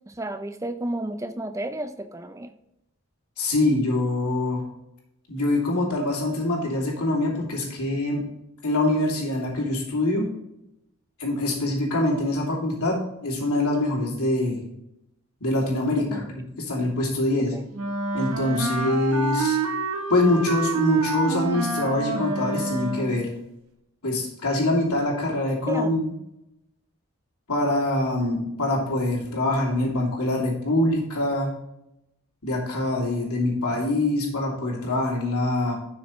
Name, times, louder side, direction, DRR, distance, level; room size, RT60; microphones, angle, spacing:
voice 1, 0.1-2.5 16.1-16.3 17.4-17.7 25.7-26.0, right 1 dB, 15° right, 9 dB, 0.4 m, -32 dB
voice 2, 3.4-4.6 5.3-8.2 8.6-10.3 11.2-14.6 15.4-17.5 18.1-19.6 20.1-23.3 24.0-26.1 27.5-31.5 32.4-35.7, left 1 dB, 85° left, -2 dB, 2.7 m, -24 dB
Wind instrument woodwind instrument, 17.7-23.3, right 3 dB, 70° right, 1.1 m, -27 dB
11.0 x 6.3 x 3.1 m, 0.86 s
head